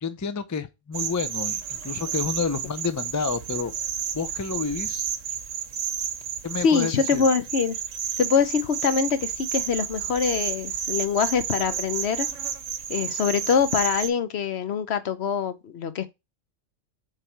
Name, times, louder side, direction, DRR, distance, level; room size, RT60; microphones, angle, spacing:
voice 1, 0.0-3.7 4.1-5.1 6.4-7.2, left 5 dB, 25° left, 0.4 m, -29 dB
sound 1, 0.9-14.1, right 9 dB, 90° right, 1.2 m, -31 dB
voice 2, 6.6-7.8 8.2-12.3 12.9-16.1, left 6 dB, 60° left, 1.0 m, -24 dB
7.7 x 3.3 x 4.5 m
omnidirectional pair, 1.3 m